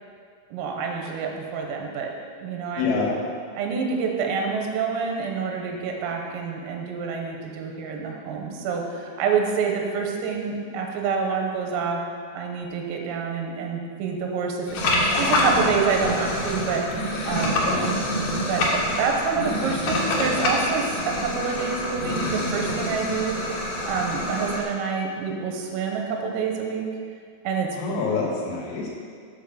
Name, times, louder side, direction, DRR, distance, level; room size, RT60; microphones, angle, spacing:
voice 1, 0.5-2.1 2.4-2.9 3.6-12.0 12.4-14.6 15.2-16.8 17.3-17.7 18.3-23.4 23.9-26.8 27.5-28.0, right 5 dB, 85° right, 1 dB, 3.6 m, -27 dB
voice 2, 2.8-3.2 17.6-17.9 27.7-28.9, left 4 dB, 85° left, -3 dB, 4.3 m, -26 dB
sound 1, 14.7-24.6, left 1 dB, 65° left, 3.0 m, -26 dB
9.2 x 5.3 x 6.6 m, 2.1 s
omnidirectional pair, 6.0 m